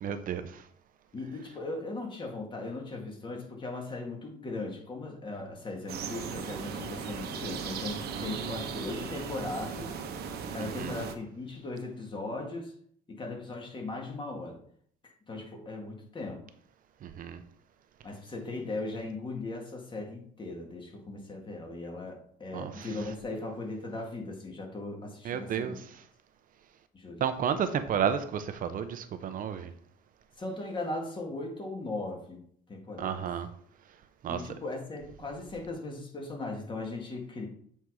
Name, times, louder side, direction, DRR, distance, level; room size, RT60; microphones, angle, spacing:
voice 1, 0.0-0.5 8.1-8.4 10.6-10.9 17.0-17.4 22.5-22.7 25.2-25.7 27.2-29.7 33.0-33.5 34.2-34.4, right 8 dB, 55° right, 0.8 m, -31 dB
voice 2, 1.1-10.0 10.5-12.7 13.1-14.6 15.0-16.4 18.0-25.8 26.9-27.2 30.4-32.4 32.7-33.3 34.3-37.5, left 2 dB, 30° left, 2.2 m, -38 dB
sound 1, 5.9-11.1, right 6 dB, 70° right, 1.1 m, -37 dB
8.0 x 4.2 x 4.9 m
cardioid pair, 110°, 17 cm